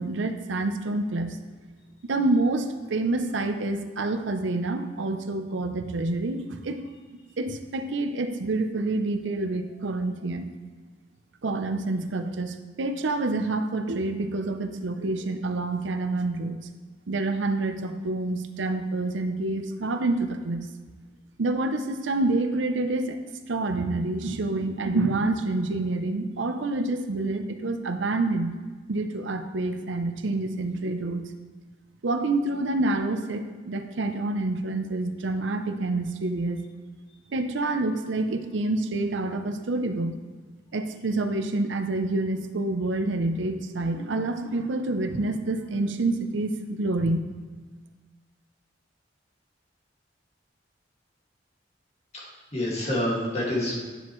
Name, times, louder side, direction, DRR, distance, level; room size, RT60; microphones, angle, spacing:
voice 1, 0.0-1.4 2.1-6.8 7.4-10.5 11.4-16.7 17.1-20.7 21.4-23.2 23.5-28.6 28.9-31.3 32.0-36.6 37.3-40.2 40.7-47.3, right 2 dB, 80° right, 7 dB, 0.6 m, -27 dB
voice 2, 52.1-53.8, left 1 dB, 35° left, -4 dB, 2.0 m, -28 dB
10.0 x 7.3 x 3.1 m, 1.4 s
head